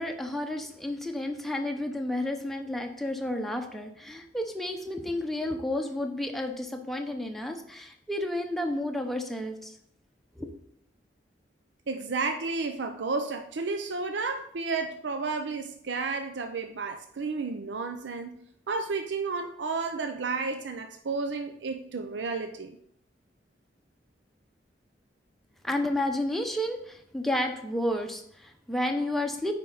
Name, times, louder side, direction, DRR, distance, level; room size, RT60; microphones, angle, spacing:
voice 1, 0.0-9.7 10.4-10.5 25.6-29.5, left 1 dB, ahead, 3 dB, 0.8 m, -31 dB
voice 2, 11.9-18.3 18.7-22.7, right 4 dB, 90° right, 6 dB, 0.6 m, -32 dB
9.4 x 4.5 x 3.9 m, 0.69 s
head